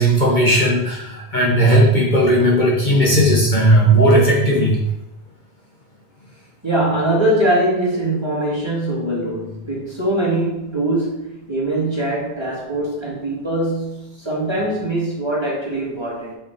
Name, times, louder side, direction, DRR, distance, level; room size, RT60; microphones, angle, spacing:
voice 1, 0.0-4.8, right 1 dB, 45° left, -3 dB, 1.2 m, -15 dB
voice 2, 6.6-16.3, right 1 dB, 25° right, -5 dB, 2.0 m, -22 dB
5.8 x 5.1 x 4.5 m, 0.89 s
omnidirectional pair, 1.2 m